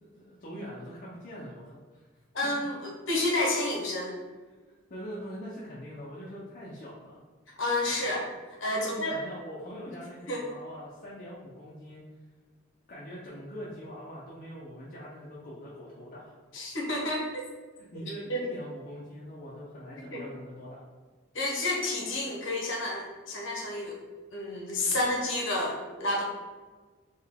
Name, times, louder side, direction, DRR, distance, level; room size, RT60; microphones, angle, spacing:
voice 1, 0.0-2.1 4.9-7.2 8.7-12.0 12.9-16.3 17.9-20.8, equal, 40° left, -6 dB, 0.5 m, -43 dB
voice 2, 2.3-4.1 7.6-8.3 8.6-9.2 10.3-10.4 16.5-17.4 18.3-18.4 20.1-20.2 21.3-24.0 24.3-26.2, left 1 dB, 65° left, -2 dB, 0.9 m, -30 dB
3.7 x 2.2 x 3.5 m, 1.3 s
head